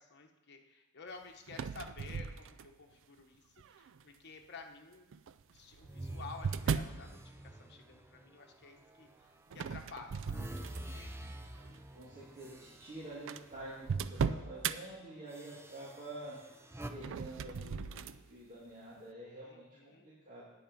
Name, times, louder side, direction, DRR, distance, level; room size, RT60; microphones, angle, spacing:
voice 1, 0.0-5.1 5.5-11.1 19.4-20.1, left 4 dB, 50° left, 3 dB, 1.2 m, -52 dB
sound 1, 1.5-2.9 3.6-4.0 5.1-7.0 9.5-11.1 11.5-11.8 12.6-12.7 12.8-12.9 13.3-14.8 16.9-18.2, right 6 dB, 60° right, 0.4 m, -37 dB
sound 2, 5.8-9.2 9.6-13.9 14.3-14.5 15.3-16.9, right 1 dB, 10° right, 0.6 m, -48 dB
voice 2, 11.9-16.6 16.9-20.5, right 1 dB, 35° right, -7 dB, 2.3 m, -48 dB
10.0 x 8.7 x 5.3 m, 1.0 s
head